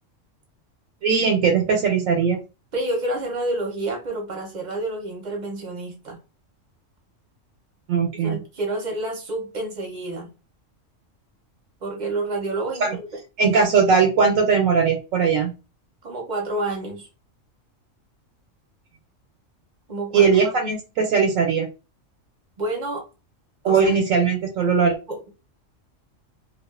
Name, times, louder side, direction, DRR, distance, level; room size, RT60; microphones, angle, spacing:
voice 1, 1.0-2.4 7.9-8.4 12.8-13.0 13.4-15.5 20.1-21.7 23.6-24.9, right 5 dB, 85° right, 1.0 m, -19 dB
voice 2, 2.7-6.2 8.2-10.3 11.8-13.1 16.0-17.1 19.9-20.3 20.6-20.8 22.6-23.0 23.6-24.0 25.1-25.3, right 2 dB, 45° right, 0.6 m, -29 dB
2.3 x 2.3 x 2.3 m
omnidirectional pair, 1.4 m